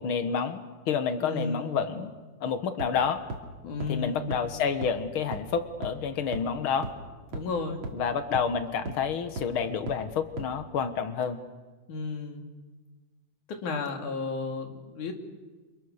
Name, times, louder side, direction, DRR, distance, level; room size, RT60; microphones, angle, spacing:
voice 1, 0.0-2.1 2.4-3.3 3.9-6.9 7.9-11.4, left 6 dB, 50° left, 10 dB, 1.9 m, -29 dB
voice 2, 1.2-1.7 3.6-4.3 7.3-7.8 11.9-12.5 13.5-15.1, left 4 dB, 75° left, 4 dB, 4.0 m, -33 dB
sound 1, 2.8-2.9 3.3-3.4 3.8-3.9 4.3-4.4 4.8-4.9 5.3-5.4 5.8-5.9 6.3-6.4 6.8-6.9 7.3-7.4 7.8-7.9 8.3-8.4 8.9-9.0 9.4-9.5 9.9-10.0 10.4-10.5, right 2 dB, 40° right, 3.1 m, -34 dB
30.0 x 26.5 x 6.7 m, 1.3 s
omnidirectional pair, 3.6 m